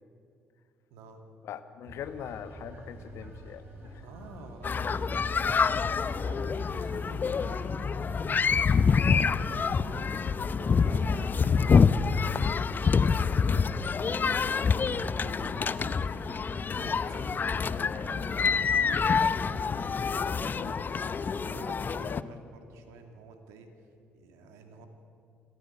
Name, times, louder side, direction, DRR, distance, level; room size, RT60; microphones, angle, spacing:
voice 1, 0.9-1.2 4.0-8.4 9.4-16.0 16.6-18.2 18.6-19.8 20.1-21.1 21.4-24.9, right 3 dB, 70° right, 6 dB, 2.4 m, -50 dB
voice 2, 1.4-4.0 20.5-20.8 21.9-22.3, left 8 dB, 60° left, 10 dB, 1.3 m, -42 dB
sound 1, 1.8-20.0, right 1 dB, 45° right, 6.5 m, -46 dB
sound 2, 4.6-22.2, left 5 dB, 40° left, 0.7 m, -27 dB
25.5 x 14.5 x 8.0 m, 2.5 s
hypercardioid pair, 50°, 5 cm